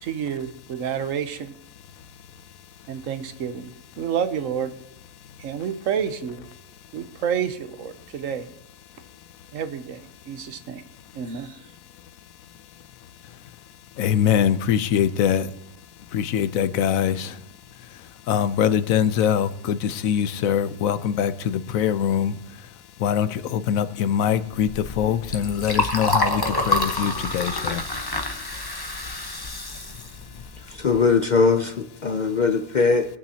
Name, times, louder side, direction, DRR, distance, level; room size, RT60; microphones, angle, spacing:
voice 1, 0.0-1.5 2.9-4.7 5.4-6.5 6.9-8.5 9.5-10.0 10.3-10.8 11.1-11.6, right 8 dB, 75° right, 10 dB, 1.2 m, -29 dB
voice 2, 14.0-15.5 16.1-17.3 18.3-22.4 23.0-27.8, left 9 dB, 85° left, 13 dB, 1.1 m, -23 dB
Liquid, 24.5-31.2, left 2 dB, 20° left, 0.9 m, -28 dB
voice 3, 30.7-33.1, left 4 dB, 55° left, 7 dB, 0.5 m, -20 dB
23.0 x 8.9 x 2.8 m, 0.85 s
omnidirectional pair, 1.4 m